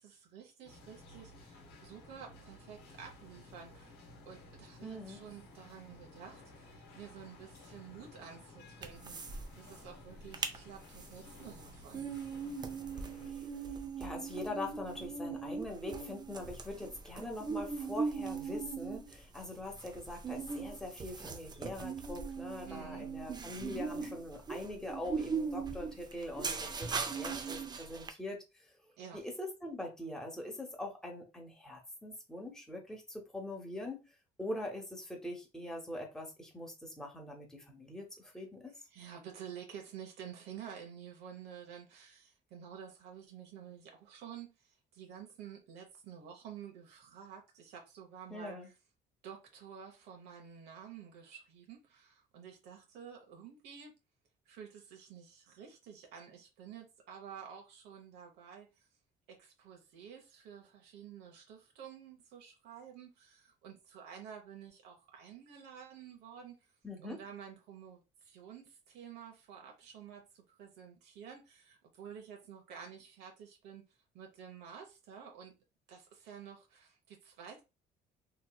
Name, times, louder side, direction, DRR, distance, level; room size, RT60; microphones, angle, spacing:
voice 1, 0.0-4.0 4.2-12.1 22.7-23.1 29.0-29.3 38.9-48.7 49.2-53.9 54.5-58.9 59.3-66.5 67.0-73.8 74.1-75.5 75.9-77.6, right 8 dB, 80° right, 0.8 m, -51 dB
sound 1, 0.6-13.3, left 2 dB, 80° left, 0.9 m, -55 dB
voice 2, 4.8-5.2 12.9-13.7 14.0-28.7 29.1-34.1 34.4-38.7 48.3-48.7 66.8-67.2, left 1 dB, 5° left, 1.0 m, -43 dB
sound 2, 8.8-9.4 9.7-9.8 10.2-10.6 11.0-28.1, right 5 dB, 25° right, 0.5 m, -39 dB
2.9 x 2.6 x 2.2 m
cardioid pair, 110°, 17 cm